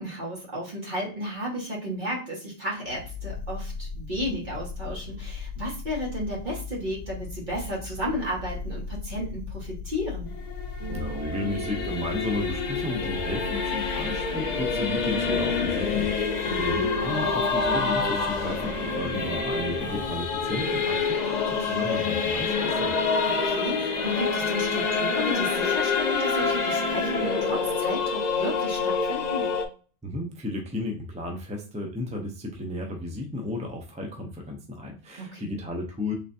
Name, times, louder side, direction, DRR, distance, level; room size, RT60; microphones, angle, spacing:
voice 1, 0.0-10.3 16.5-16.9 23.3-29.5 35.2-35.6, equal, 40° right, -4 dB, 1.7 m, -33 dB
sound 1, 2.8-22.1, left 4 dB, 70° left, 0.8 m, -39 dB
Singing / Musical instrument, 10.3-29.7, left 5 dB, 50° left, 0.6 m, -27 dB
sound 2, 10.8-27.4, right 3 dB, 75° right, 2.0 m, -39 dB
voice 2, 10.9-22.9 30.0-36.1, left 2 dB, 10° right, 1 dB, 0.3 m, -33 dB
3.7 x 3.3 x 2.6 m, 0.37 s
omnidirectional pair, 1.3 m